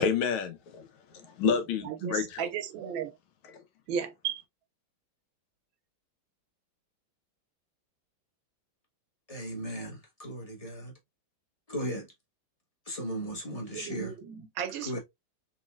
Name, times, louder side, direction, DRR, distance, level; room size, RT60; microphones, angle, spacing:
voice 1, 0.0-2.5 3.5-3.6, left 7 dB, 85° left, 1.7 m, -30 dB
voice 2, 1.8-3.1 3.9-4.4 13.7-15.0, right 8 dB, 75° right, 1.3 m, -34 dB
voice 3, 9.3-10.9 11.7-12.1 12.9-14.1 14.8-15.0, equal, 20° left, 1.0 m, -36 dB
4.2 x 3.2 x 2.3 m
omnidirectional pair, 2.3 m